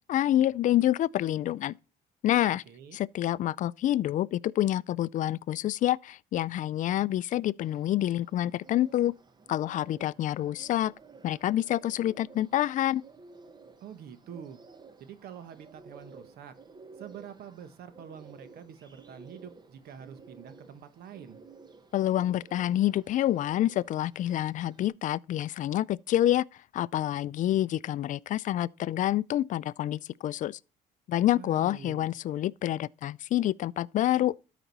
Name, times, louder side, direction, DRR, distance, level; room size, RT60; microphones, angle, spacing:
voice 1, 0.1-1.8 2.2-2.6 2.9-9.1 9.5-10.9 11.2-13.0 21.9-26.4 26.7-30.6 31.1-34.3, left 13 dB, 50° left, 0.4 m, -27 dB
voice 2, 2.7-3.0 13.8-14.6 15.0-16.5 17.0-21.4 31.3-32.2, right 8 dB, 65° right, 1.2 m, -46 dB
Bird, 7.6-24.9, right 4 dB, 25° right, 1.0 m, -54 dB
12.5 x 5.1 x 4.0 m
cardioid pair, 110°, 17 cm